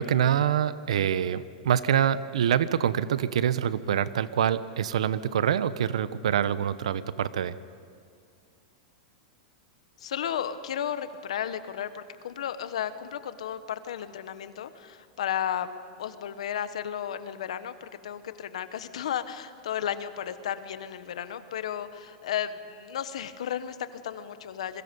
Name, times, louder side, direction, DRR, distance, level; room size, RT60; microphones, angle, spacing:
voice 1, 0.0-7.6, right 9 dB, 85° right, 15 dB, 0.9 m, -25 dB
voice 2, 10.0-15.7 16.0-24.8, left 9 dB, 85° left, 12 dB, 1.3 m, -34 dB
27.0 x 22.5 x 5.4 m, 2.3 s
supercardioid pair, 135°, 3 cm